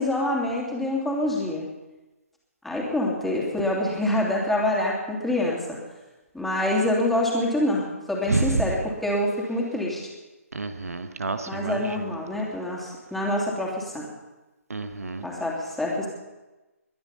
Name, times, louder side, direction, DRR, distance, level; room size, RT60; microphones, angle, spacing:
voice 1, 0.0-1.7 2.6-5.8 6.3-10.1 11.5-14.1 15.2-16.1, left 1 dB, ahead, -4 dB, 3.0 m, -26 dB
voice 2, 8.3-8.6 10.5-12.1 14.7-15.3, right 3 dB, 75° right, 9 dB, 1.2 m, -28 dB
22.0 x 10.0 x 5.6 m, 1.1 s
figure-of-eight pair, 140°, 8 cm